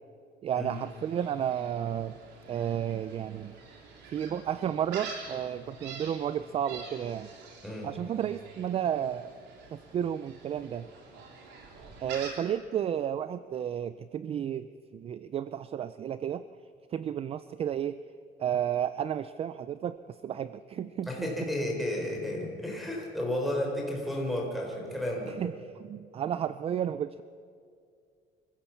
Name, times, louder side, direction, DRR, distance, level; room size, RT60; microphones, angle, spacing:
voice 1, 0.4-2.2 2.5-3.6 4.1-7.3 7.8-9.3 9.7-10.9 12.0-16.5 16.9-18.0 18.4-21.3 25.4-25.5 25.8-27.2, right 9 dB, 35° right, 14 dB, 0.4 m, -32 dB
Gull seagull, 0.7-12.3, right 4 dB, 80° right, 3.7 m, -47 dB
voice 2, 21.0-25.4, left 1 dB, ahead, 0 dB, 4.3 m, -32 dB
25.0 x 15.5 x 7.1 m, 2.3 s
cardioid pair, 145°, 18 cm